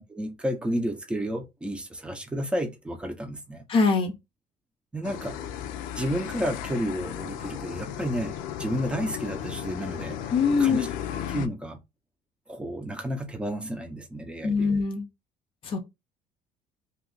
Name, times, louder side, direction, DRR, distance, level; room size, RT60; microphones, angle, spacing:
voice 1, 0.1-3.6 4.9-5.4 6.0-8.3 8.6-10.2 10.6-10.9 11.3-11.8 12.5-14.7, equal, 5° right, 0.6 m, -31 dB
voice 2, 3.7-4.1 10.3-10.9 14.4-15.0 15.6-15.8, left 5 dB, 40° left, 0.6 m, -23 dB
sound 1, 5.0-11.5, left 9 dB, 80° left, 0.5 m, -35 dB
2.8 x 2.4 x 3.8 m
cardioid pair, 145°, 14 cm